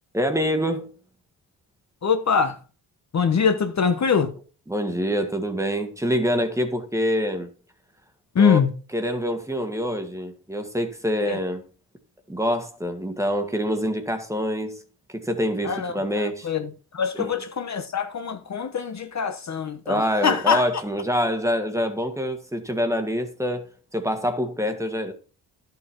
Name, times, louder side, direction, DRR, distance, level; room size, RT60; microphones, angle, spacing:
voice 1, 0.1-0.9 4.7-7.5 8.4-8.6 8.9-11.6 12.3-14.8 15.1-16.5 19.8-23.6 23.9-25.1, equal, 5° right, 1.6 m, -25 dB
voice 2, 2.0-2.6 3.1-4.3 8.3-8.7 11.2-11.4 15.6-20.6, left 6 dB, 40° left, 1.1 m, -23 dB
13.0 x 7.1 x 4.6 m
wide cardioid pair, 150°, 41 cm